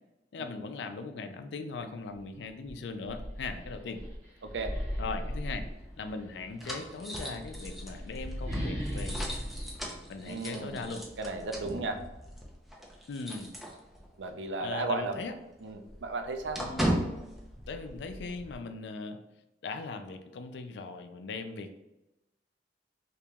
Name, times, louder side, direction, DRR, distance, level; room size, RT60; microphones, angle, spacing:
voice 1, 0.3-4.0 5.0-5.7 6.0-9.4 10.1-11.0 13.1-13.5 14.6-15.3 16.6-16.9 17.7-19.2 19.6-21.8, left 4 dB, 75° left, 8 dB, 0.4 m, -39 dB
sound 1, 2.1-2.2 2.6-6.3 7.2-10.8, equal, 40° right, 1.2 m, -37 dB
voice 2, 4.4-4.7 10.3-10.9 11.2-12.0 14.2-15.2 15.6-16.6, right 3 dB, 90° right, 6 dB, 0.4 m, -34 dB
sound 2, 5.4-14.3 14.6-14.7 15.1-18.5, equal, ahead, 0.5 m, -38 dB
2.9 x 2.8 x 3.4 m, 0.97 s
head